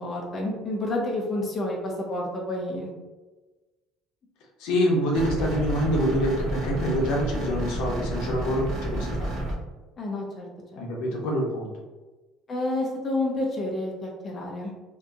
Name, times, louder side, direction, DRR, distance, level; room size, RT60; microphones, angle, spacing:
voice 1, 0.0-2.9 10.0-10.8 12.5-14.7, left 1 dB, 25° left, -1 dB, 0.6 m, -29 dB
voice 2, 4.6-9.3 10.8-11.7, equal, 70° left, -1 dB, 0.7 m, -26 dB
sound 1, 5.1-9.5, right 1 dB, 45° right, 0.6 m, -30 dB
2.8 x 2.5 x 2.4 m, 1.2 s
cardioid pair, 170°, 0 cm